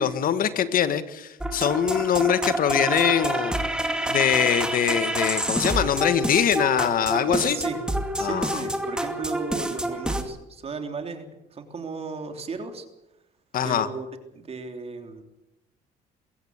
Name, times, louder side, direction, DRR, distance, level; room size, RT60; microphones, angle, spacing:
voice 1, 0.0-3.6 4.1-7.6 8.2-8.6 13.5-13.9, left 9 dB, 55° left, 12 dB, 1.5 m, -23 dB
sound 1, 1.4-10.2, right 1 dB, 5° right, 2.4 m, -28 dB
voice 2, 7.3-7.8 8.2-11.2 11.5-12.9 13.6-14.1 14.3-15.2, right 4 dB, 35° right, 6 dB, 3.3 m, -35 dB
22.5 x 16.5 x 8.1 m, 0.91 s
cardioid pair, 110°, 17 cm